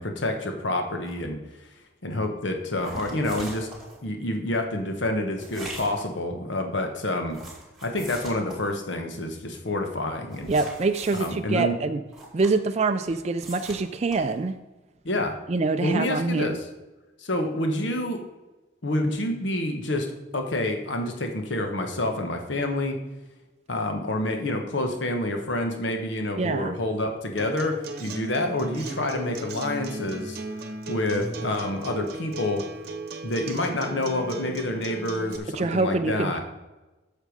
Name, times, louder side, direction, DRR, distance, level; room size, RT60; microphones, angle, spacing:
voice 1, 0.0-1.4 2.0-3.7 4.0-7.4 7.8-10.5 11.1-11.7 15.0-15.3 15.8-16.6 17.2-18.2 18.8-23.0 23.7-30.4 30.9-32.6 33.2-36.4, left 1 dB, 75° left, 4 dB, 1.1 m, -28 dB
sound 1, 1.0-1.2 2.8-4.0 5.4-6.2 7.3-8.8 10.3-11.3 12.1-12.8 13.1-14.4, right 1 dB, ahead, 2.3 m, -41 dB
voice 2, 10.5-12.0 12.3-14.5 15.5-16.6 26.4-26.8 35.5-36.4, right 3 dB, 35° right, 8 dB, 0.3 m, -25 dB
Acoustic guitar, 27.4-35.4, right 2 dB, 55° right, 1.0 m, -36 dB
8.0 x 6.6 x 5.1 m, 1.1 s
head